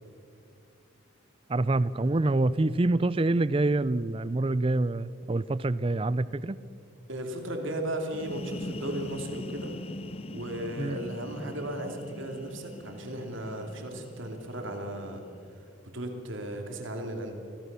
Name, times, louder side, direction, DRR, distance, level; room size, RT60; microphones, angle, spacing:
voice 1, 1.5-6.6 10.8-11.0, right 2 dB, 25° right, 18 dB, 0.4 m, -26 dB
voice 2, 7.1-9.7 10.3-15.2 15.9-17.3, right 1 dB, 65° right, 3 dB, 3.1 m, -35 dB
sound 1, 8.0-15.6, left 1 dB, 30° left, 0.6 m, -42 dB
25.5 x 17.0 x 6.9 m, 2.5 s
head